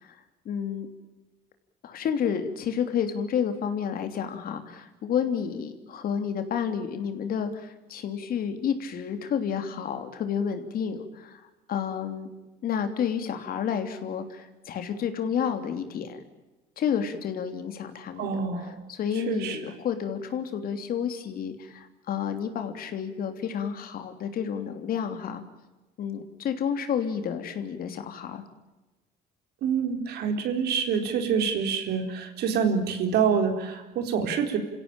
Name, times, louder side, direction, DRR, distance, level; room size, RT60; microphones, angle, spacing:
voice 1, 0.4-0.9 1.8-11.4 11.7-12.3 12.6-16.2 16.8-25.4 26.0-28.4, left 7 dB, 60° left, 8 dB, 3.2 m, -30 dB
voice 2, 18.2-18.8 19.2-19.6 29.6-34.6, right 6 dB, 75° right, 6 dB, 4.1 m, -26 dB
29.0 x 16.5 x 9.0 m, 1.1 s
cardioid pair, 110°, 17 cm